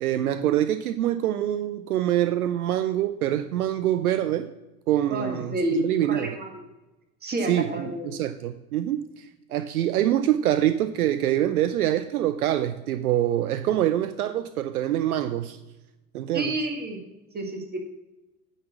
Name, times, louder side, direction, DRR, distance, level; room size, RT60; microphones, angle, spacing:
voice 1, 0.0-4.5 4.9-6.4 7.4-15.6 16.1-16.5, right 12 dB, 70° right, 11 dB, 0.6 m, -25 dB
voice 2, 5.1-6.5 7.2-8.1 16.3-17.0 17.3-17.8, right 1 dB, 20° right, 3 dB, 1.8 m, -29 dB
9.4 x 4.1 x 7.3 m, 1.0 s
figure-of-eight pair, 70°, 45 cm